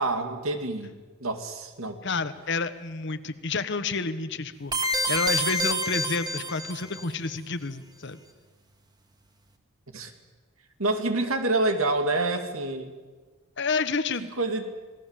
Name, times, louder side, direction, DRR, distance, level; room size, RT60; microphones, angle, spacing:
voice 1, 0.0-2.0 9.9-10.1 10.8-12.9 14.4-14.7, right 2 dB, 80° right, 7 dB, 2.4 m, -27 dB
voice 2, 2.0-8.2 13.6-14.3, left 4 dB, 55° left, 12 dB, 1.2 m, -30 dB
sound 1, 4.7-7.0, equal, 20° right, 1.9 m, -27 dB
27.0 x 19.0 x 7.5 m, 1.4 s
head